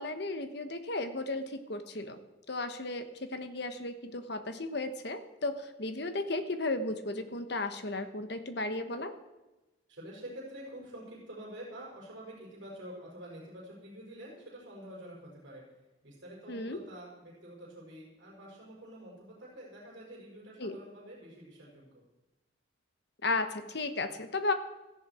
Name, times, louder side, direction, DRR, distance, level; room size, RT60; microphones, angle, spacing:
voice 1, 0.0-2.2 2.5-9.1 16.5-16.8 20.6-20.8 23.2-24.5, left 2 dB, 55° left, 8 dB, 1.3 m, -34 dB
voice 2, 9.9-15.6 16.0-22.0, right 1 dB, 60° right, -5 dB, 5.2 m, -47 dB
17.0 x 14.5 x 4.5 m, 1.1 s
head